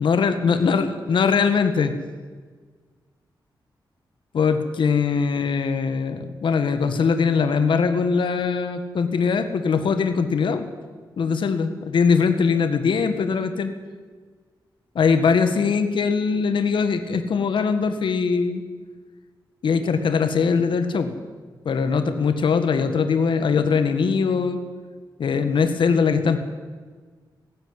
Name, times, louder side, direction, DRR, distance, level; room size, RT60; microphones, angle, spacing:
voice 1, 0.0-1.9 4.3-10.7 11.2-13.7 15.0-18.6 19.6-21.2 21.7-24.6 25.2-26.4, left 5 dB, 80° left, 9 dB, 1.8 m, -21 dB
18.5 x 15.5 x 9.9 m, 1.5 s
wide cardioid pair, 105°, 8 cm